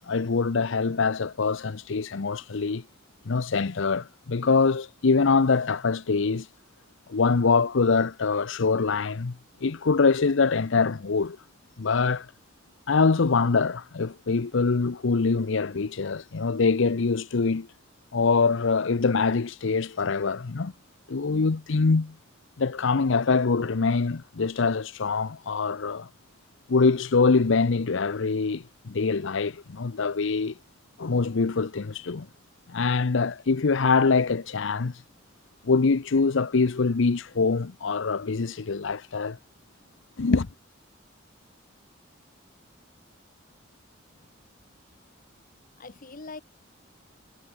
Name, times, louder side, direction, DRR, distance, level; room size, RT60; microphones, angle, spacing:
voice 1, 0.1-2.8 3.3-6.5 7.1-9.4 9.6-11.4 11.8-12.3 12.9-17.7 18.1-20.7 21.1-22.1 22.6-26.1 26.7-30.5 31.0-32.3 32.7-34.9 35.6-39.4 40.2-40.5, left 4 dB, 70° left, 0.7 m, -24 dB
voice 2, 45.8-46.4, left 3 dB, 45° left, 1.3 m, -43 dB
head